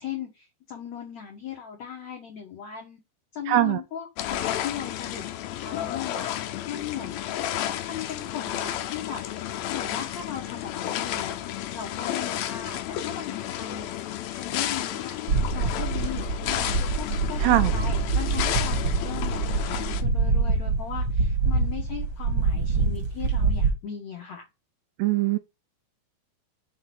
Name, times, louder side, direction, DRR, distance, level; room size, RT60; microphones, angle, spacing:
voice 1, 0.0-3.0 3.3-5.2 5.6-7.3 7.8-9.2 9.7-13.9 14.3-15.1 15.5-24.4, left 8 dB, 75° left, 1.6 m, -37 dB
voice 2, 3.5-3.8 17.4-17.7 25.0-25.4, right 15 dB, 85° right, 2.3 m, -21 dB
sound 1, 4.2-20.0, left 12 dB, 90° left, 2.1 m, -32 dB
sound 2, 15.3-23.7, right 4 dB, 50° right, 1.6 m, -25 dB
6.5 x 3.9 x 6.0 m
omnidirectional pair, 5.2 m